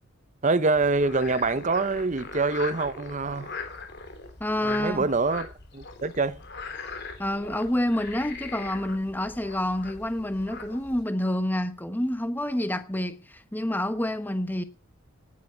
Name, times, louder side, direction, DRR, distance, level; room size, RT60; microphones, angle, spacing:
voice 1, 0.4-3.5 4.6-5.5 5.7-6.4, right 3 dB, 35° right, 0.8 m, -25 dB
Frog, 0.7-11.0, left 4 dB, 50° left, 3.2 m, -41 dB
voice 2, 4.4-5.1 7.2-14.6, left 1 dB, 10° left, 1.1 m, -28 dB
17.5 x 9.5 x 5.7 m
head